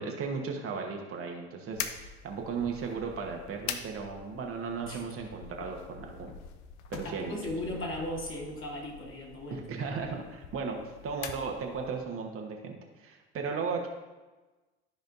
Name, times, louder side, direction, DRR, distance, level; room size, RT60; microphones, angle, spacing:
voice 1, 0.0-6.3 6.9-7.4 9.5-13.9, right 5 dB, 40° right, 2 dB, 1.2 m, -36 dB
sound 1, 1.7-12.1, left 8 dB, 55° left, 0.7 m, -44 dB
voice 2, 7.0-9.6, left 1 dB, 35° left, -2 dB, 2.3 m, -37 dB
13.0 x 5.0 x 2.7 m, 1.2 s
hypercardioid pair, 65°, 34 cm